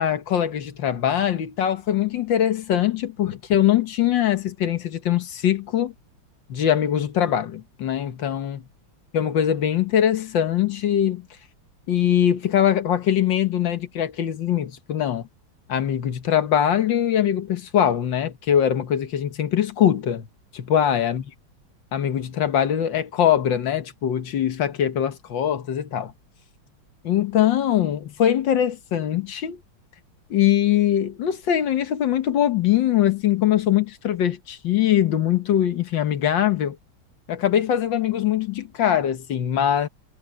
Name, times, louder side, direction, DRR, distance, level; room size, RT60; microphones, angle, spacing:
voice 1, 0.0-5.9 6.5-8.6 9.1-11.3 11.9-15.3 15.7-20.3 20.5-21.2 21.9-26.1 27.0-29.6 30.3-36.8 37.3-39.9, left 10 dB, 65° left, 1.9 m, -22 dB
omnidirectional pair, 2.2 m